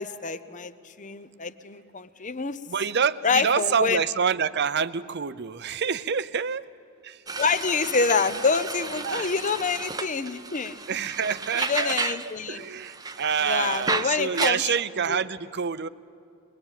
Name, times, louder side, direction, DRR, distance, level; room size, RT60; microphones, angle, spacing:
voice 1, 0.0-2.6 3.2-4.0 7.4-10.8 11.5-12.7 13.4-14.6 15.1-15.2, left 5 dB, 40° left, 13 dB, 0.8 m, -27 dB
voice 2, 2.7-6.6 7.0-7.2 9.0-9.3 10.9-12.0 12.5-15.9, right 6 dB, 55° right, 15 dB, 0.7 m, -27 dB
sound 1, 7.3-12.3 12.6-14.5, right 4 dB, 20° right, 0.7 m, -32 dB
23.0 x 22.0 x 9.1 m, 2.6 s
head